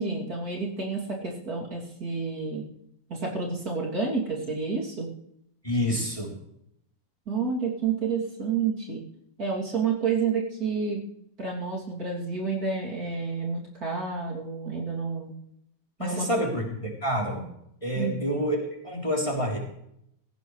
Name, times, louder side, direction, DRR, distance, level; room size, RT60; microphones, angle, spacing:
voice 1, 0.0-2.7 3.1-5.1 7.3-9.0 9.4-11.0 11.4-15.3 16.0-16.5 17.9-18.3, right 5 dB, 50° right, -3 dB, 3.4 m, -29 dB
voice 2, 5.6-6.3 16.0-17.5 17.8-18.6 18.8-19.6, equal, 15° left, -2 dB, 3.5 m, -28 dB
17.0 x 16.5 x 3.3 m, 0.75 s
omnidirectional pair, 2.1 m